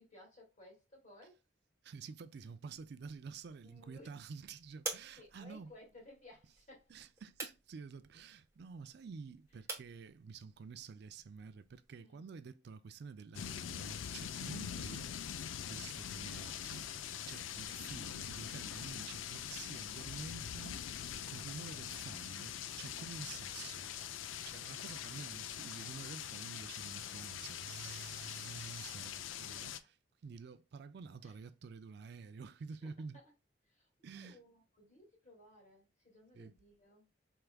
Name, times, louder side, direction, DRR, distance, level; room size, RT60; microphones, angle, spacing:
voice 1, 0.0-1.4 3.6-4.1 5.2-6.9 12.0-12.2 28.8-29.3 31.2-31.3 32.8-33.3 33.7-33.9 34.2-37.1, left 1 dB, 40° left, 2.1 m, -59 dB
voice 2, 1.8-5.7 6.9-15.1 15.7-20.8 21.3-23.9 24.5-30.0 30.2-33.2 34.0-34.4 36.3-36.5, right 5 dB, 60° right, 0.4 m, -50 dB
sound 1, 2.7-11.9, right 4 dB, 15° right, 1.0 m, -50 dB
sound 2, 13.3-29.8, left 9 dB, 90° left, 0.4 m, -43 dB
4.7 x 3.4 x 2.2 m
head